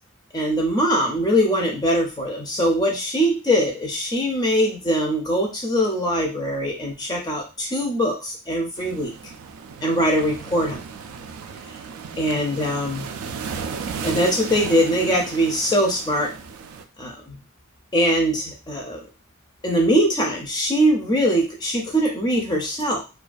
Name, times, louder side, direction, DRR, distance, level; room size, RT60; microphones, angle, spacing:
voice 1, 0.3-9.1 9.8-10.8 12.2-13.1 14.0-16.3 17.0-17.4 17.9-19.0 19.6-23.0, equal, 20° left, -1 dB, 0.4 m, -22 dB
sound 1, 8.8-16.8, right 6 dB, 70° right, 0.3 m, -35 dB
2.3 x 2.2 x 2.4 m, 0.31 s
head